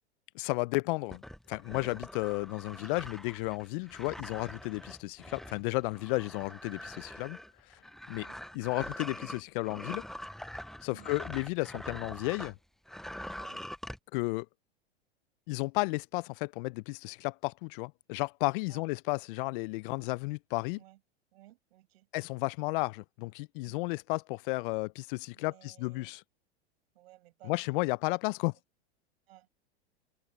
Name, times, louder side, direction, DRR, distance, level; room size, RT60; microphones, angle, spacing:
voice 1, 0.3-1.2 1.5-7.4 7.7-7.8 8.1-8.3 8.5-10.0 10.8-12.5 14.1-14.5 15.5-20.8 22.1-26.2 27.4-28.5, left 25 dB, 50° left, 0.8 m, -33 dB
sound 1, 1.1-12.6 12.9-14.0, equal, ahead, 0.9 m, -44 dB
voice 2, 21.3-22.1 23.6-23.9 25.4-26.1 26.9-27.5 29.3-29.5, right 16 dB, 65° right, 7.1 m, -57 dB
hypercardioid pair, 105°, 34 cm